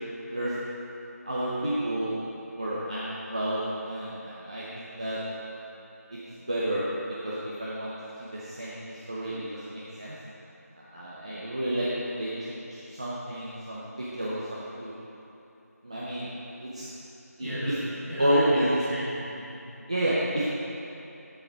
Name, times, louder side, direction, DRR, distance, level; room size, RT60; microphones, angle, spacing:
voice 1, 1.2-2.2 2.5-5.2 6.1-7.9 8.2-10.2 10.7-14.9 15.8-16.3 16.6-16.9 17.4-17.5 18.2-18.7 19.9-20.4, right 1 dB, 20° right, -9 dB, 0.8 m, -30 dB
voice 2, 17.4-19.8, equal, ahead, -21 dB, 1.6 m, -35 dB
10.5 x 7.8 x 4.6 m, 2.9 s
figure-of-eight pair, 175°, 9 cm